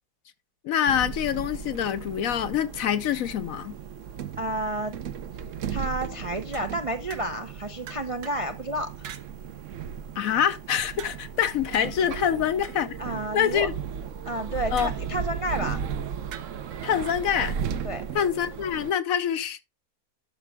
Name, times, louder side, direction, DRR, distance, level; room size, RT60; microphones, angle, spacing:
voice 1, 0.6-3.7 10.1-13.0 13.3-13.7 14.7-14.9 16.8-17.6 18.1-19.6, left 9 dB, 65° left, 1.0 m, -25 dB
sound 1, 0.9-18.9, right 7 dB, 60° right, 1.0 m, -36 dB
voice 2, 4.4-4.9 5.7-9.1 13.0-13.7 14.2-15.8 17.8-18.0, right 1 dB, 40° right, 0.5 m, -31 dB
sound 2, 6.5-7.5 7.9-8.5 9.0-9.3 11.0-13.4 14.8-15.4 16.3-17.2, right 8 dB, 85° right, 1.5 m, -46 dB
12.0 x 6.1 x 3.5 m
omnidirectional pair, 1.7 m